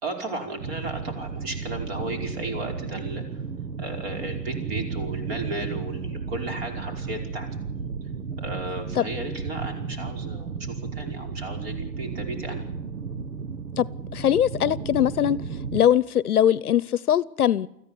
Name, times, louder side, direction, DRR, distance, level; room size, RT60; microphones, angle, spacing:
voice 1, 0.0-3.2 3.8-7.5 8.4-12.6, right 2 dB, 35° right, 5.4 m, -34 dB
sound 1, 0.6-15.8, right 5 dB, 90° right, 1.6 m, -33 dB
voice 2, 14.1-15.4 15.7-17.7, left 10 dB, 65° left, 0.9 m, -21 dB
24.5 x 14.5 x 9.9 m
hypercardioid pair, 170°, 48 cm